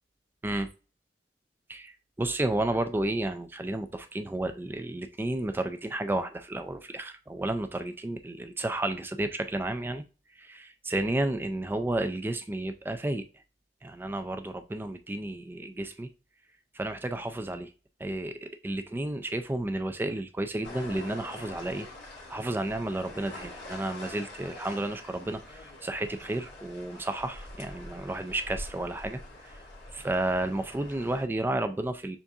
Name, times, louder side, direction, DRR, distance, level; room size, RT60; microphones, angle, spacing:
voice 1, 1.7-10.0 10.4-13.2 13.8-16.1 16.7-17.7 18.0-21.9 22.3-29.5 29.9-32.2, right 1 dB, 10° right, 0.3 m, -32 dB
sound 1, 20.6-31.2, left 2 dB, 90° left, 2.0 m, -45 dB
7.0 x 2.5 x 2.7 m
head